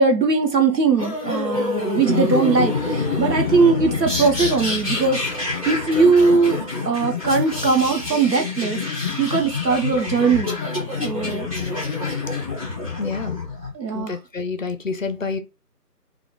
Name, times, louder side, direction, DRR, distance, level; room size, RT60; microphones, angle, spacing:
voice 1, 0.0-10.5 11.0-11.5 13.7-14.2, right 4 dB, 90° right, 0.9 m, -20 dB
sound 1, 1.0-13.7, left 3 dB, 20° right, 0.8 m, -26 dB
voice 2, 13.0-13.4 13.9-15.4, left 4 dB, 55° left, 0.5 m, -28 dB
2.4 x 2.2 x 3.1 m
figure-of-eight pair, 160°, 49 cm